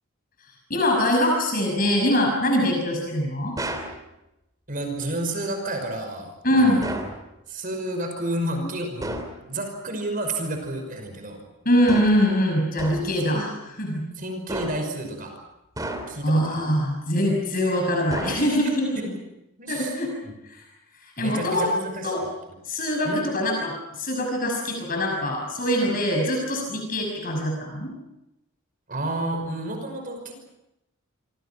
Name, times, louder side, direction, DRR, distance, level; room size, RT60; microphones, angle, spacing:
voice 1, 0.7-3.5 6.4-6.8 11.7-13.5 13.8-14.0 16.2-19.1 19.7-20.1 20.5-20.6 21.0-21.7 22.0-22.2 22.7-27.9, equal, 40° left, 1 dB, 5.9 m, -23 dB
sound 1, 3.6-4.0 6.8-7.2 9.0-9.4 11.9-12.3 12.8-13.2 14.5-15.0 15.8-16.3 18.1-18.8, right 1 dB, 15° right, 3.2 m, -33 dB
voice 2, 4.7-7.0 7.5-11.4 13.2-13.5 14.2-15.3 16.1-16.7 19.0-19.2 19.6-19.9 20.2-20.3 21.2-22.3 23.0-23.3 28.9-30.3, right 1 dB, 40° right, 5 dB, 5.6 m, -31 dB
28.0 x 26.0 x 5.8 m, 0.92 s
head